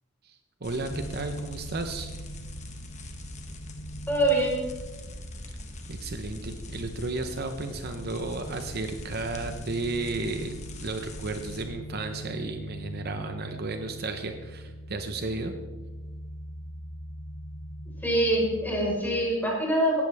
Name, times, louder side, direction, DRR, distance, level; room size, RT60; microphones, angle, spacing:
voice 1, 0.2-2.1 5.9-15.5, right 3 dB, 50° right, 6 dB, 1.0 m, -33 dB
sound 1, 0.6-11.6, left 1 dB, 35° left, 1.6 m, -42 dB
sound 2, 0.8-19.0, equal, 60° left, 3.9 m, -42 dB
voice 2, 4.1-4.6 18.0-20.0, right 1 dB, 10° left, -3 dB, 4.8 m, -24 dB
18.0 x 13.5 x 3.6 m, 1.2 s
head